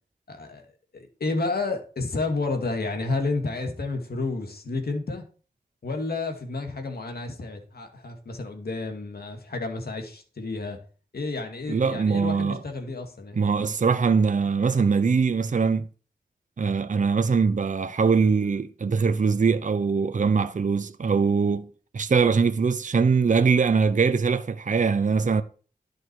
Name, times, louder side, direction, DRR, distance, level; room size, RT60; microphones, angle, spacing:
voice 1, 0.3-0.7 0.9-5.2 5.8-10.8 11.1-13.4, left 3 dB, 70° left, 2.5 m, -30 dB
voice 2, 11.7-12.6 13.3-15.9 16.6-21.7 21.9-25.4, right 5 dB, 50° right, 0.8 m, -22 dB
11.0 x 6.5 x 4.8 m
wide cardioid pair, 100°, 17 cm